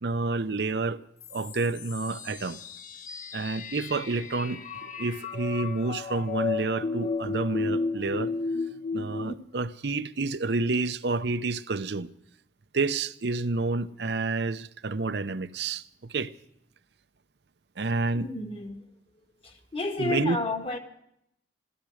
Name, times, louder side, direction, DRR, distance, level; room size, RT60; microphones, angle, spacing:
voice 1, 0.0-1.0 1.3-2.6 3.3-8.3 8.9-12.1 12.7-16.3 17.8-18.3 20.0-20.4, right 3 dB, 70° right, 0.7 m, -29 dB
sound 1, 1.2-9.3, left 4 dB, 50° left, 1.0 m, -33 dB
voice 2, 18.1-18.8 19.4-20.8, left 2 dB, 35° left, 1.7 m, -31 dB
15.5 x 14.0 x 6.4 m
head